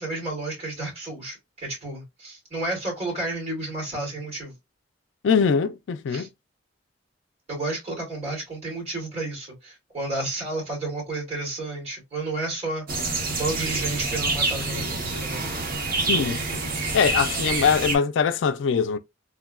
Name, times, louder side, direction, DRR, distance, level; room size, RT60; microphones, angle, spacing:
voice 1, 0.0-4.5 6.1-6.3 7.5-12.8 13.3-15.5, right 2 dB, 35° right, 2.0 m, -31 dB
voice 2, 5.2-6.3 16.0-16.4 16.9-19.0, left 6 dB, 80° left, 0.4 m, -22 dB
sound 1, 12.9-18.0, right 3 dB, 50° right, 0.8 m, -27 dB
3.5 x 2.2 x 2.3 m
head